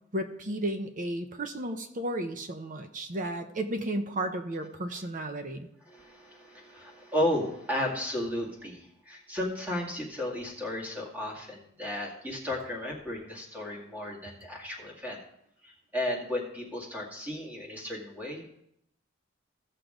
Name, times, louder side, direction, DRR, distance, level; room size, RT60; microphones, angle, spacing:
voice 1, 0.1-5.7, right 1 dB, 40° right, 6 dB, 0.9 m, -33 dB
voice 2, 5.9-15.2 15.6-18.5, left 1 dB, 10° right, -2 dB, 2.2 m, -34 dB
15.5 x 6.6 x 3.8 m, 0.76 s
head